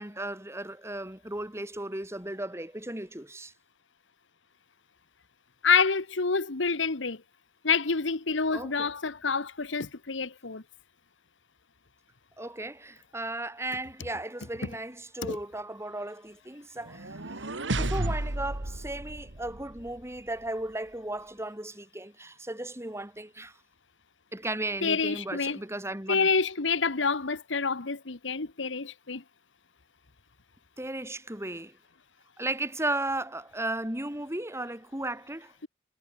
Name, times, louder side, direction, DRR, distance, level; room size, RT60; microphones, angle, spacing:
voice 1, 0.0-3.5 8.5-8.9 12.4-23.6 24.3-26.3 30.8-31.8 32.4-35.5, right 2 dB, 15° right, 4.6 m, -35 dB
voice 2, 5.6-7.2 7.6-10.6 15.2-15.4 24.8-25.6 26.1-29.2, left 5 dB, 90° left, 1.4 m, -27 dB
sound 1, 16.8-20.0, right 1 dB, 80° right, 2.5 m, -32 dB
head